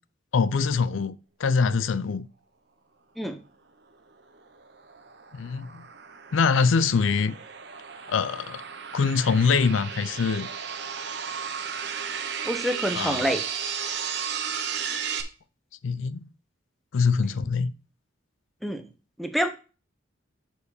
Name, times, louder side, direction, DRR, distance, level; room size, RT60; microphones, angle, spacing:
voice 1, 0.3-2.3 5.3-5.9 6.3-7.4 8.1-8.6 8.9-10.5 12.9-13.3 15.8-16.3 16.9-17.7, left 5 dB, 80° left, 0.5 m, -24 dB
sound 1, 4.4-15.2, right 7 dB, 60° right, 0.9 m, -34 dB
voice 2, 12.4-13.4 18.6-18.8 19.2-19.5, equal, ahead, 0.7 m, -27 dB
7.0 x 4.6 x 4.9 m
head